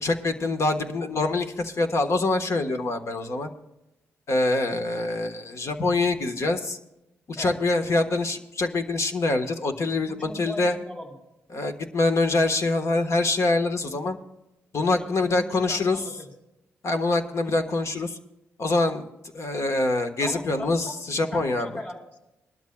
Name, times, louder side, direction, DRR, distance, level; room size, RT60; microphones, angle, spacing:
voice 1, 0.0-3.5 4.3-6.8 7.3-10.8 11.5-14.2 14.7-16.0 16.8-18.2 18.6-19.0 19.3-21.7, left 2 dB, 55° left, 6 dB, 1.4 m, -25 dB
voice 2, 10.1-11.1 15.0-16.1 20.2-20.9 21.3-22.2, left 1 dB, 25° left, 0 dB, 4.6 m, -39 dB
21.5 x 12.5 x 2.3 m, 0.91 s
cardioid pair, 65°, 6 cm